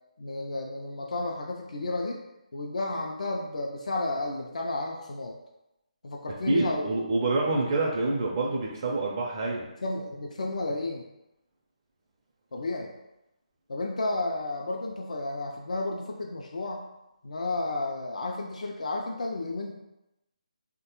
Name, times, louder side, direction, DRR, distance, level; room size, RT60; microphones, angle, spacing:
voice 1, 0.2-2.2 2.5-5.3 6.0-6.9 9.8-11.0 12.5-12.9 13.7-16.8 17.2-19.7, left 2 dB, 75° left, 0 dB, 0.4 m, -32 dB
voice 2, 6.5-9.7, right 2 dB, 35° right, -2 dB, 0.5 m, -27 dB
3.2 x 2.1 x 2.9 m, 0.92 s
figure-of-eight pair, 150°, 4 cm